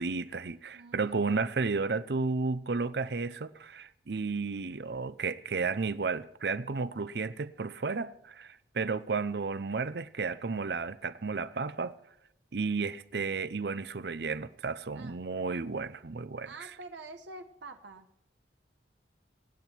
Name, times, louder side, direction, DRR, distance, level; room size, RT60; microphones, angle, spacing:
voice 1, 0.0-12.0 12.5-16.7, right 4 dB, 60° right, 0.6 m, -33 dB
voice 2, 0.7-1.3 14.9-15.2 16.4-18.1, right 2 dB, 80° right, 1.1 m, -47 dB
25.5 x 9.0 x 4.5 m
head